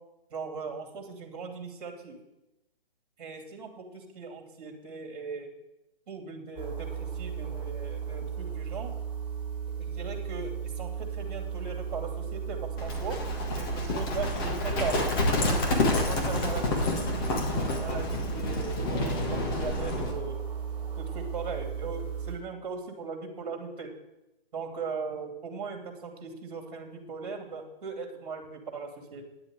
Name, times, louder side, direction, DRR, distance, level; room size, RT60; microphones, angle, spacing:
voice 1, 0.3-2.2 3.2-5.5 6.1-8.9 9.8-13.2 13.5-15.1 16.1-20.4 21.0-23.9 24.5-29.2, right 4 dB, 40° right, 4 dB, 2.8 m, -39 dB
sound 1, 6.6-22.4, right 7 dB, 5° right, 2.5 m, -35 dB
Livestock farm animals working animals, 12.8-20.1, left 2 dB, 20° left, 1.7 m, -29 dB
9.9 x 7.8 x 9.2 m, 0.94 s
hypercardioid pair, 160°, 30 cm